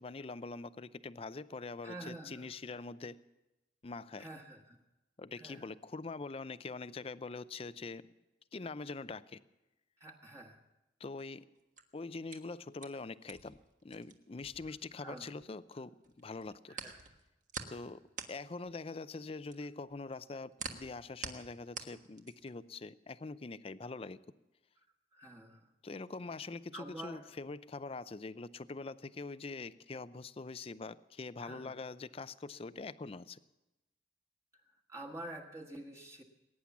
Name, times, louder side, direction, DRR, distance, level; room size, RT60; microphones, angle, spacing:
voice 1, 0.0-3.2 3.8-4.3 5.2-8.1 8.5-9.4 11.0-11.5 11.9-16.8 17.7-18.0 18.3-24.2 25.8-33.4, left 3 dB, 30° left, 15 dB, 0.5 m, -44 dB
voice 2, 1.8-2.5 4.2-4.8 5.4-5.6 10.0-10.6 15.0-15.2 16.7-17.0 25.1-25.7 26.7-27.3 31.4-31.7 34.9-36.2, right 1 dB, 15° right, 1 dB, 1.4 m, -47 dB
sound 1, 11.6-15.7 16.0-22.6, right 5 dB, 45° right, 1.4 m, -47 dB
20.5 x 9.8 x 7.2 m, 0.99 s
head